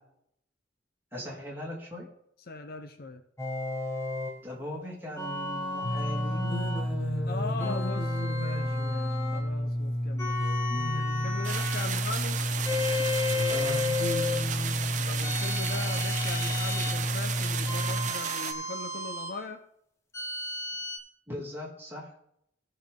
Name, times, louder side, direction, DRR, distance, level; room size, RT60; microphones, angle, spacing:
voice 1, 1.1-2.1 4.4-7.6 10.7-10.9 13.5-13.8 21.3-22.1, left 1 dB, 10° right, -5 dB, 2.7 m, -39 dB
voice 2, 2.5-3.2 7.2-10.5 10.9-12.4 14.9-19.6, left 3 dB, 50° left, 6 dB, 0.7 m, -40 dB
sound 1, 3.4-4.4 5.2-6.9 7.6-9.5 10.2-11.9 12.6-14.5 15.2-17.0 17.7-19.4 20.1-21.0, left 3 dB, 15° left, 1.2 m, -34 dB
sound 2, 5.8-18.1, equal, 75° left, 1.4 m, -30 dB
sound 3, 11.4-18.5, right 8 dB, 40° right, 0.6 m, -34 dB
16.5 x 5.5 x 3.7 m, 0.74 s
head